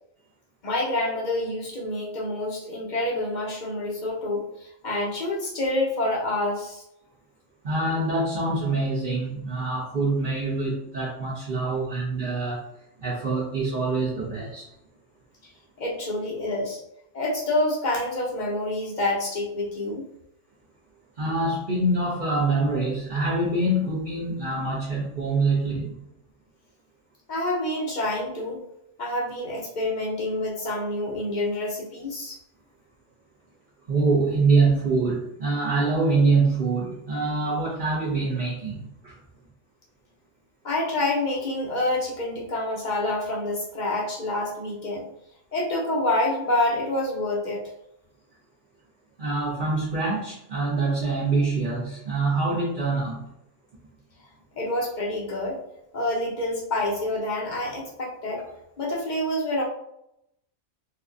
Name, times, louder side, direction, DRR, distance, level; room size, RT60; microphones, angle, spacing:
voice 1, 0.6-6.8 15.8-16.8 17.1-20.1 27.3-28.6 29.0-32.4 40.6-45.1 45.5-47.6 54.6-55.6 55.9-59.6, left 1 dB, 45° left, -3 dB, 0.8 m, -27 dB
voice 2, 7.6-12.6 13.0-14.7 21.2-26.0 33.9-39.2 49.2-53.3, right 3 dB, 45° right, -8 dB, 0.9 m, -25 dB
4.2 x 2.3 x 2.5 m, 0.79 s
omnidirectional pair, 1.3 m